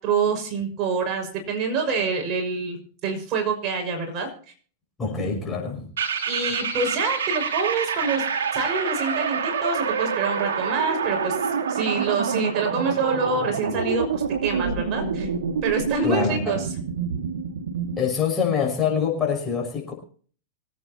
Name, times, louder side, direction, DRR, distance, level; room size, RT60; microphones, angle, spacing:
voice 1, 0.0-4.3 6.3-8.2 8.5-11.4 11.7-15.3 15.6-16.7, right 4 dB, 40° right, 3 dB, 5.8 m, -26 dB
voice 2, 5.0-5.9 16.0-16.6 18.0-19.9, left 6 dB, 20° left, 1 dB, 5.9 m, -25 dB
sound 1, 6.0-18.0, right 6 dB, 75° right, 2.2 m, -27 dB
25.5 x 9.2 x 2.9 m, 0.43 s
hypercardioid pair, 115°, 0 cm